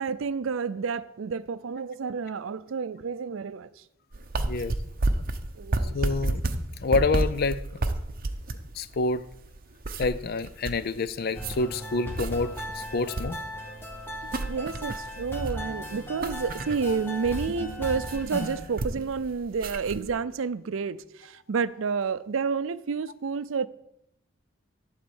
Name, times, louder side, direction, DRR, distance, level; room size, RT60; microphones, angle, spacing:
voice 1, 0.0-3.8 5.6-6.0 14.2-23.7, right 5 dB, 80° right, 0.5 m, -30 dB
sound 1, 4.1-20.1, right 2 dB, 45° right, 0.7 m, -32 dB
voice 2, 4.4-4.7 5.9-6.4 6.8-7.6 8.7-9.3 10.0-13.4 16.9-17.0, left 3 dB, 50° left, 0.4 m, -27 dB
sound 2, 11.3-18.6, equal, 10° left, 1.5 m, -37 dB
11.5 x 4.2 x 7.1 m
head